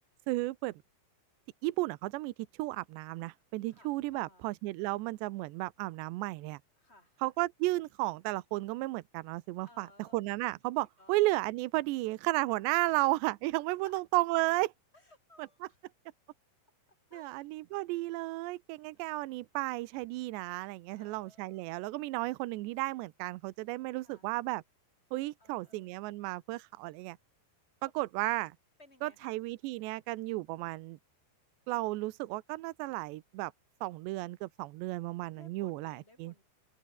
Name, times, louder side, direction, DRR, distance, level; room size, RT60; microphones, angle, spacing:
voice 1, 0.3-0.8 1.6-6.6 7.2-14.7 17.1-24.6 25.1-27.2 27.8-28.6 29.0-31.0 31.7-33.5 33.8-36.3, right 20 dB, 85° right, 2.9 m, -33 dB
voice 2, 3.7-4.5 6.8-7.4 9.6-10.2 10.7-11.2 12.8-13.0 13.7-14.0 14.9-15.8 17.1-17.5 20.9-21.9 24.0-24.3 25.4-26.0 28.8-29.4 30.5-30.9 35.3-36.4, left 2 dB, 15° left, 7.8 m, -61 dB
open air
omnidirectional pair, 5.1 m